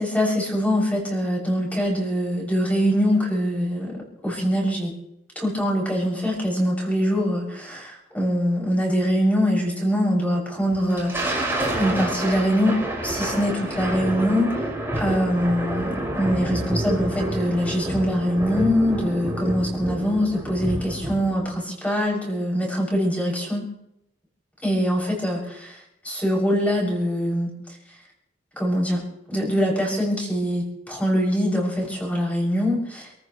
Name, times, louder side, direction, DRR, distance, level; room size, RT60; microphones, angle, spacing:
voice 1, 0.0-3.9 4.2-4.9 5.4-12.7 13.0-14.5 15.0-23.6 24.6-25.8 26.0-27.5 28.6-29.0 29.3-33.1, equal, 10° left, -3 dB, 7.3 m, -23 dB
Thunder, 10.7-21.5, right 1 dB, 10° right, 5.5 m, -28 dB
29.5 x 14.5 x 3.3 m, 0.80 s
head